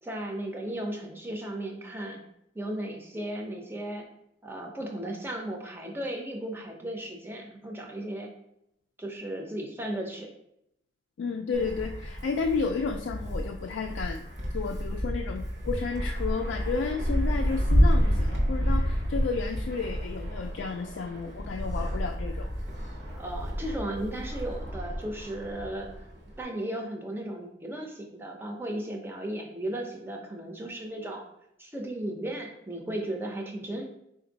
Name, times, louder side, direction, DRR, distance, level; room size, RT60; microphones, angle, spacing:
voice 1, 0.0-2.2 2.5-4.1 4.4-8.3 9.0-10.3 23.1-26.1 26.4-31.2 31.6-33.8, right 1 dB, 10° right, 1 dB, 0.6 m, -35 dB
voice 2, 11.2-14.3 14.5-22.5, left 4 dB, 70° left, 3 dB, 0.3 m, -32 dB
Wind, 11.5-26.4, equal, 60° right, 1.0 m, -29 dB
4.1 x 2.6 x 3.9 m, 0.78 s
head